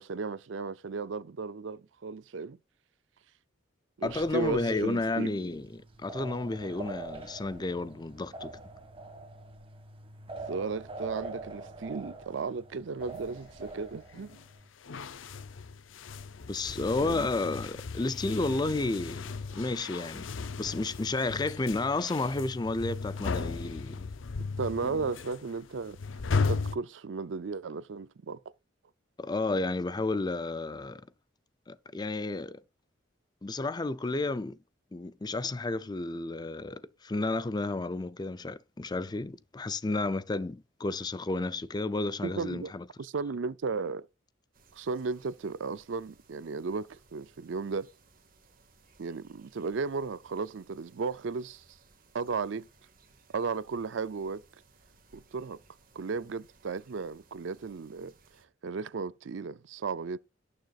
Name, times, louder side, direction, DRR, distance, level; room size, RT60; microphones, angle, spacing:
voice 1, 0.0-2.6 4.0-5.3 10.5-14.3 17.0-17.3 24.6-26.0 26.5-28.4 42.2-42.7 43.0-44.1 44.7-47.9 49.0-51.6 52.1-52.7 53.3-54.4 55.1-55.6 55.9-58.1 58.6-60.2, right 4 dB, 75° right, 0.5 m, -35 dB
voice 2, 4.0-8.6 16.5-20.3 20.6-24.1 29.2-31.0 31.7-32.6 33.4-34.6 34.9-42.9, left 2 dB, 20° left, 0.5 m, -32 dB
sound 1, 4.0-14.7, right 2 dB, 30° right, 1.8 m, -44 dB
sound 2, 13.0-14.5 14.8-26.8, left 4 dB, 85° left, 0.6 m, -36 dB
sound 3, 44.5-58.5, right 3 dB, 50° right, 1.9 m, -62 dB
17.5 x 6.6 x 2.4 m
head